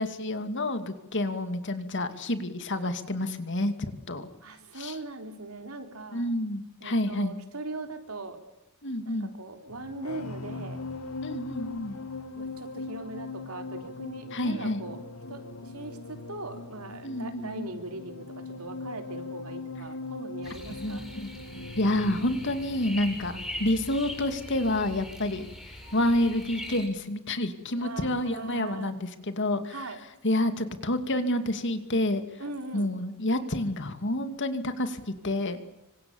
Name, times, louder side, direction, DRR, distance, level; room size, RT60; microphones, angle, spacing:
voice 1, 0.0-4.3 4.7-5.0 6.1-7.3 8.8-9.3 11.2-12.0 14.3-14.8 17.0-17.8 20.8-21.3 21.8-25.4 25.9-29.8 30.2-32.2 32.7-35.6, left 1 dB, 55° left, 9 dB, 2.5 m, -29 dB
voice 2, 4.4-6.3 6.8-8.4 9.1-10.8 12.4-15.0 15.3-21.1 27.8-28.9 29.7-30.0 32.4-32.9, right 2 dB, 80° right, 6 dB, 3.8 m, -40 dB
sound 1, 9.7-26.3 26.6-26.9, left 3 dB, 80° left, 2.1 m, -41 dB
sound 2, 20.4-26.9, left 1 dB, ahead, 7.9 m, -42 dB
26.5 x 25.5 x 7.2 m, 0.93 s
head